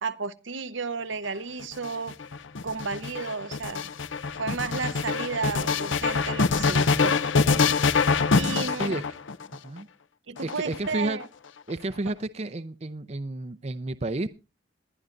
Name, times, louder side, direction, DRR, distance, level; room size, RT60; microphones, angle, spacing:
voice 1, 0.0-2.1 2.6-3.9 4.4-7.2 8.3-9.0 10.3-11.3, right 4 dB, 75° right, 11 dB, 0.9 m, -32 dB
sound 1, 1.6-9.6 10.4-11.2, left 4 dB, 75° left, 0.7 m, -25 dB
voice 2, 10.4-11.2 11.7-14.3, right 2 dB, 35° right, 11 dB, 0.5 m, -31 dB
21.0 x 11.0 x 2.5 m, 0.29 s
head